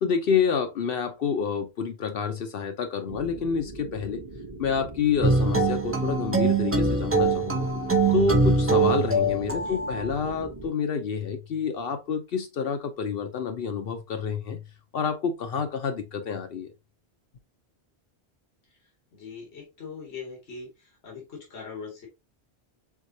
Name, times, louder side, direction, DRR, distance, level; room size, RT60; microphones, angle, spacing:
voice 1, 0.0-4.2 4.6-7.7 8.1-14.6 14.9-16.7, left 6 dB, 65° left, 0.8 m, -28 dB
sound 1, 3.1-10.7, right 2 dB, 35° right, 0.9 m, -41 dB
sound 2, 5.2-10.1, right 3 dB, 15° right, 0.5 m, -23 dB
voice 2, 19.1-22.1, left 5 dB, 90° left, 1.6 m, -41 dB
4.7 x 3.9 x 2.7 m
omnidirectional pair, 1.1 m